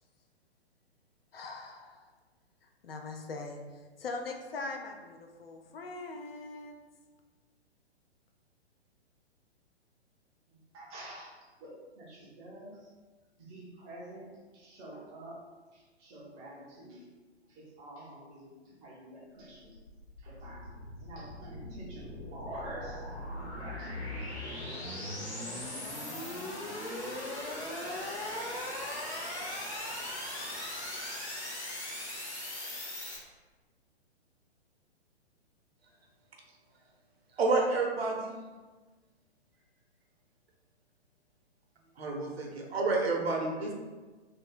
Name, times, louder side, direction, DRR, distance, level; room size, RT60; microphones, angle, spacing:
voice 1, 1.3-2.0 2.6-3.6 4.0-6.8, left 3 dB, 60° left, 3 dB, 0.5 m, -41 dB
voice 2, 10.5-12.9 13.4-15.5 15.7-17.1 17.5-19.8 20.2-25.5, right 1 dB, 10° right, -6 dB, 0.4 m, -48 dB
sound 1, 19.4-33.2, left 1 dB, 75° left, 1.1 m, -39 dB
voice 3, 37.4-38.3 42.0-43.7, right 3 dB, 65° right, 0 dB, 0.8 m, -29 dB
2.6 x 2.2 x 3.7 m, 1.3 s
figure-of-eight pair, 120°, 33 cm